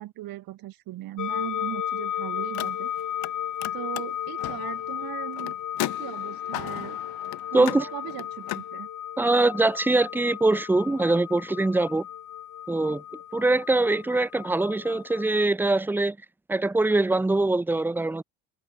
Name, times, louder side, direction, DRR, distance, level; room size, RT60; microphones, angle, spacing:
voice 1, 0.0-2.9 3.7-7.0 7.5-8.9, right 15 dB, 65° right, 2.8 m, -38 dB
sound 1, 1.2-15.5, left 10 dB, 50° left, 4.0 m, -34 dB
Car, 2.4-3.3 3.6-8.7, left 20 dB, 70° left, 1.4 m, -36 dB
voice 2, 7.5-7.9 9.2-12.1 12.7-13.0 13.3-16.2 16.5-18.2, right 2 dB, 5° right, 0.4 m, -23 dB
open air
supercardioid pair, 85°, 38 cm